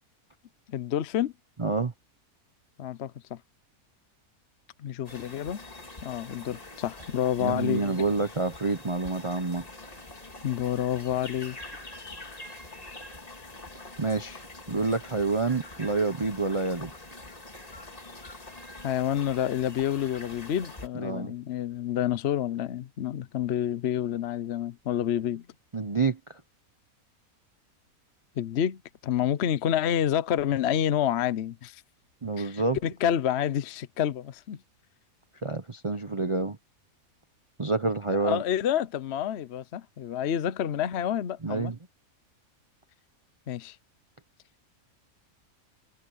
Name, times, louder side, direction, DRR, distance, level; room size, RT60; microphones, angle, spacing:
voice 1, 0.7-1.3 2.8-3.4 4.8-5.6 6.0-7.8 10.4-11.6 18.8-25.5 28.4-31.8 32.4-34.6 38.1-41.8 43.5-43.8, left 10 dB, 55° left, 0.9 m, -28 dB
voice 2, 1.6-1.9 7.4-9.7 14.0-16.9 20.9-21.3 25.7-26.4 32.2-32.8 35.4-36.6 37.6-38.4 41.4-41.8, right 3 dB, 25° right, 0.7 m, -28 dB
sound 1, 5.0-20.9, left 2 dB, 25° left, 2.1 m, -45 dB
omnidirectional pair, 1.6 m